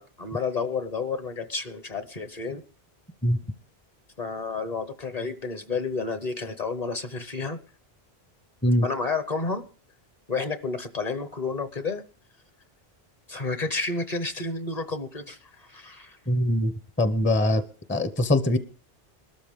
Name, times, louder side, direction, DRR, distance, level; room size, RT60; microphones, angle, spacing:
voice 1, 0.0-2.6 4.2-7.6 8.8-9.6 10.3-12.0 13.3-16.2, left 4 dB, 40° left, 10 dB, 1.1 m, -31 dB
voice 2, 16.3-16.7 17.0-17.6 17.9-18.6, left 1 dB, 15° left, 10 dB, 0.7 m, -22 dB
21.0 x 13.0 x 3.6 m, 0.39 s
omnidirectional pair, 1.1 m